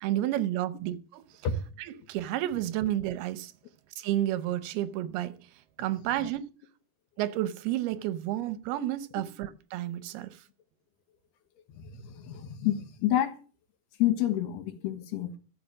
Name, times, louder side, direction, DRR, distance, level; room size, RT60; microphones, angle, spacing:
voice 1, 0.0-1.3 1.8-3.5 4.0-5.5 5.8-6.4 7.2-10.4, right 13 dB, 80° right, 2.7 m, -31 dB
voice 2, 11.8-13.3 14.0-15.3, left 12 dB, 85° left, 3.4 m, -28 dB
14.0 x 6.0 x 7.5 m
omnidirectional pair, 4.5 m